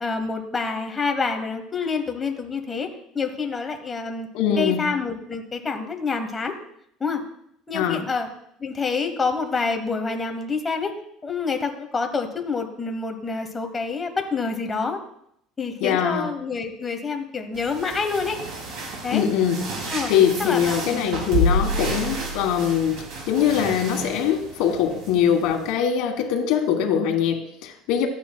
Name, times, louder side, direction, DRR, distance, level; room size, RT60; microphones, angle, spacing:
voice 1, 0.0-4.3 4.6-6.5 7.0-7.2 7.7-8.3 8.6-10.9 11.2-15.0 15.6-18.4 19.0-19.2 19.9-20.1 20.4-21.2, left 4 dB, 15° left, 4 dB, 1.0 m, -27 dB
voice 2, 4.3-4.8 7.7-8.0 15.8-16.3 19.1-19.6 20.0-28.1, left 8 dB, 70° left, 3 dB, 1.4 m, -22 dB
sound 1, 17.5-25.7, right 1 dB, 60° right, 2.5 m, -30 dB
13.5 x 9.2 x 2.2 m, 0.73 s
cardioid pair, 155°, 0 cm